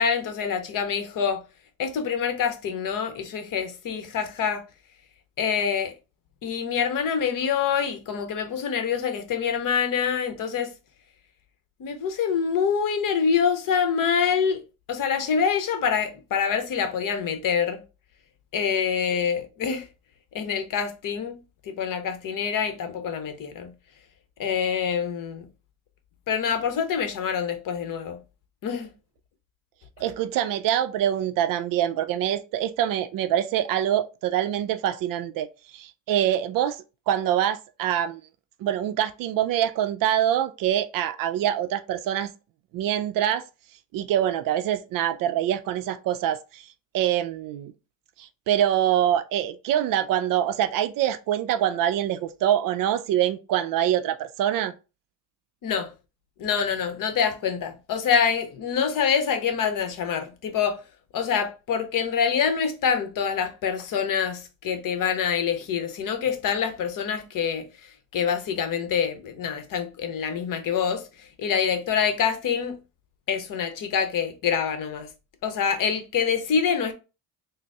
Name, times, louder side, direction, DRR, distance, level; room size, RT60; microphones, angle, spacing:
voice 1, 0.0-1.4 1.8-4.6 5.4-5.9 6.4-10.7 11.8-14.6 14.9-17.8 18.5-19.9 20.3-21.4 21.7-23.7 24.4-25.4 26.3-28.2 28.6-28.9 55.6-55.9 56.4-60.8 61.1-67.6 68.1-71.0 71.4-72.7 73.3-75.1 75.4-76.9, left 7 dB, 50° left, 0.8 m, -26 dB
voice 2, 30.0-38.2 38.6-42.3 42.7-43.4 43.9-46.7 46.9-47.7 48.2-54.7, right 11 dB, 55° right, 0.4 m, -25 dB
3.9 x 2.0 x 3.4 m
supercardioid pair, 80°, 43 cm